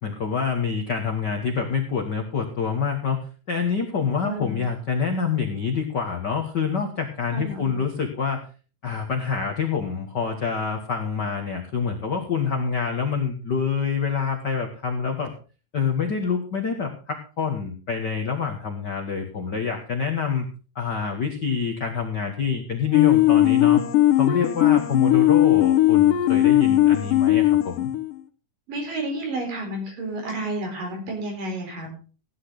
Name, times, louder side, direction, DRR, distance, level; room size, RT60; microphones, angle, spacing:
voice 1, 0.0-3.2 3.5-8.5 8.8-15.3 15.7-20.5 20.7-23.8 24.1-27.9, left 6 dB, 55° left, 3 dB, 1.2 m, -26 dB
voice 2, 4.2-4.6 7.3-7.8 28.7-31.9, right 1 dB, 70° right, 2 dB, 5.6 m, -31 dB
sound 1, 22.9-28.2, left 14 dB, 75° left, 2.5 m, -18 dB
15.5 x 10.0 x 3.9 m, 0.35 s
omnidirectional pair, 4.0 m